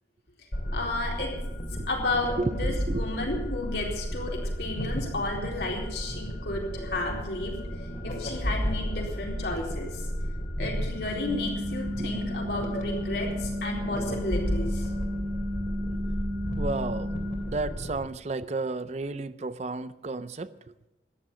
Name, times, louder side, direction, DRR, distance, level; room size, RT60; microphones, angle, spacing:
sound 1, 0.5-18.0, equal, 45° left, 2.6 m, -33 dB
voice 1, 0.7-1.3 1.9-7.6 8.0-10.0 10.6-14.9, left 2 dB, 70° left, -1 dB, 4.1 m, -32 dB
voice 2, 2.4-3.1 12.0-12.1 16.6-20.5, right 3 dB, 40° right, 15 dB, 0.5 m, -32 dB
sound 2, 11.1-17.4, left 1 dB, 80° right, 6.5 m, -33 dB
14.0 x 10.5 x 7.4 m, 1.0 s
head